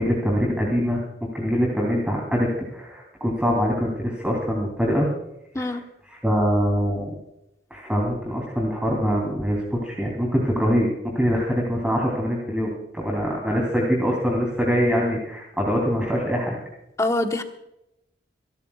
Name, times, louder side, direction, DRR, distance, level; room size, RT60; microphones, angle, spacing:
voice 1, 0.0-5.1 5.6-5.8 6.1-7.1 7.7-10.9 11.1-16.6, equal, 5° right, -2 dB, 3.2 m, -24 dB
voice 2, 17.0-17.4, left 1 dB, 20° left, 5 dB, 1.2 m, -24 dB
27.5 x 13.0 x 2.4 m, 0.86 s
head